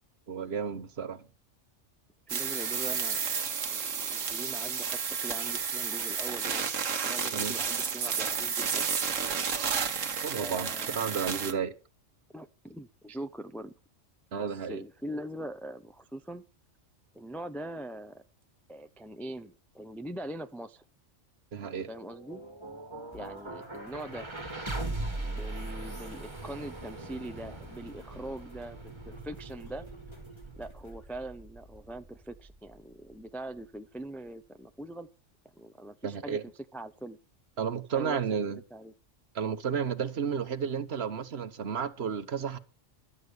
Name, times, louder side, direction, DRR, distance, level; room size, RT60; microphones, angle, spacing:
voice 1, 0.3-1.2 7.3-7.6 10.2-11.7 14.3-14.8 21.5-21.9 36.0-36.4 37.6-38.6 39.3-42.6, right 7 dB, 60° right, 1.3 m, -32 dB
voice 2, 2.3-6.7 7.0-8.9 10.4-11.2 12.3-13.8 14.4-16.4 17.1-18.2 18.7-20.8 21.9-22.4 23.1-24.3 25.2-29.9 30.6-35.1 35.6-37.2 37.9-38.2 38.7-38.9, right 1 dB, ahead, 0.4 m, -42 dB
sound 1, 2.3-11.5, right 6 dB, 90° right, 1.5 m, -31 dB
sound 2, 21.7-33.7, right 2 dB, 20° right, 2.0 m, -41 dB
sound 3, 23.1-31.1, left 2 dB, 20° left, 3.5 m, -58 dB
12.0 x 8.1 x 6.9 m
omnidirectional pair, 1.3 m